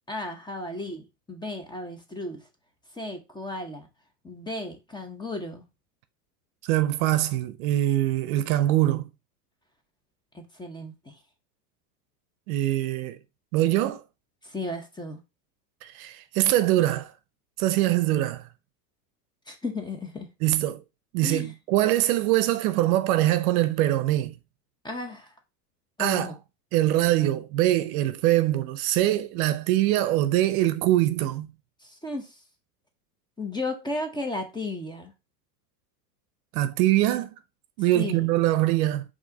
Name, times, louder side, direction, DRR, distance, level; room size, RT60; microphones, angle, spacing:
voice 1, 0.1-2.4 2.9-3.9 4.2-5.6 10.3-11.2 14.4-15.2 19.5-20.3 21.2-21.5 24.8-25.3 26.0-26.4 31.8-32.4 33.4-35.1 37.9-38.3, left 2 dB, 10° left, 0.8 m, -34 dB
voice 2, 6.6-9.1 12.5-13.2 13.5-14.0 15.8-17.1 17.6-18.4 20.4-20.8 21.1-24.3 26.0-26.3 26.7-31.5 36.5-37.3 37.8-39.0, right 15 dB, 60° right, 0.7 m, -23 dB
4.6 x 2.9 x 4.0 m
supercardioid pair, 110°, 49 cm